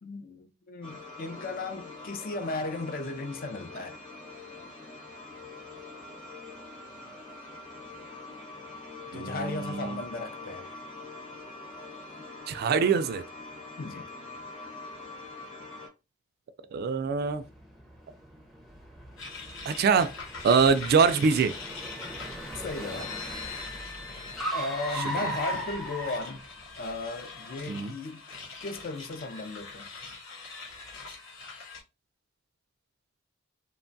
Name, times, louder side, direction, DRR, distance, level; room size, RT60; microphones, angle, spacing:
voice 1, 0.0-4.0 9.1-10.8 13.8-14.1 22.6-23.1 24.5-26.5 26.8-29.9, left 3 dB, 45° left, 0.4 m, -36 dB
sound 1, 0.8-15.9, left 3 dB, 25° left, 1.0 m, -44 dB
voice 2, 9.1-10.0 12.5-13.2 16.7-17.4 19.7-20.1 20.4-21.6 27.7-27.9, right 5 dB, 50° right, 0.3 m, -24 dB
Car, 17.1-27.0, right 1 dB, ahead, 0.5 m, -39 dB
sound 2, 19.2-31.8, left 4 dB, 70° left, 0.8 m, -42 dB
2.9 x 2.2 x 2.5 m
head